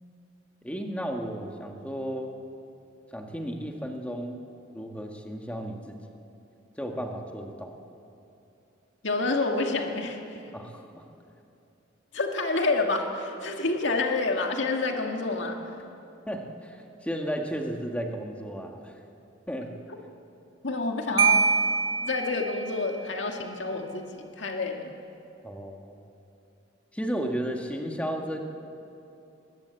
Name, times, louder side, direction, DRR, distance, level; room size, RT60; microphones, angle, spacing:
voice 1, 0.6-2.4 3.1-4.4 4.7-6.0 6.8-7.7 10.5-11.1 16.3-18.9 19.5-19.7 25.4-26.0 26.9-28.4, equal, 5° left, 2 dB, 1.7 m, -34 dB
voice 2, 9.0-10.4 12.1-15.6 20.6-21.5 22.0-24.9, left 3 dB, 70° left, 2 dB, 2.0 m, -28 dB
Marimba xylophone, 21.2-22.9, right 5 dB, 75° right, 1.0 m, -25 dB
21.5 x 19.0 x 8.2 m, 2.8 s
head